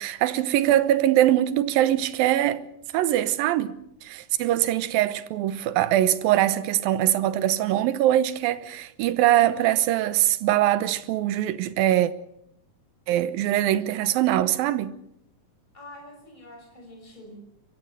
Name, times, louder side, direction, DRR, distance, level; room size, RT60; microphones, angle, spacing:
voice 1, 0.0-2.6 2.9-12.1 13.1-14.9, right 13 dB, 85° right, 2.7 m, -22 dB
voice 2, 15.7-17.4, left 1 dB, 10° left, 5.8 m, -45 dB
23.0 x 15.0 x 7.9 m
omnidirectional pair, 4.0 m